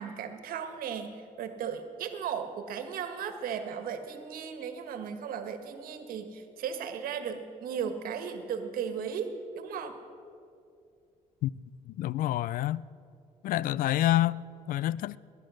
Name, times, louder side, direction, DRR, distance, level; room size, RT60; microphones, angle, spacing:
voice 1, 0.0-10.0, right 7 dB, 75° right, 1.5 m, -36 dB
voice 2, 11.9-12.8 13.4-15.2, left 13 dB, 70° left, 0.4 m, -28 dB
19.0 x 11.0 x 6.4 m
cardioid pair, 105°, 15 cm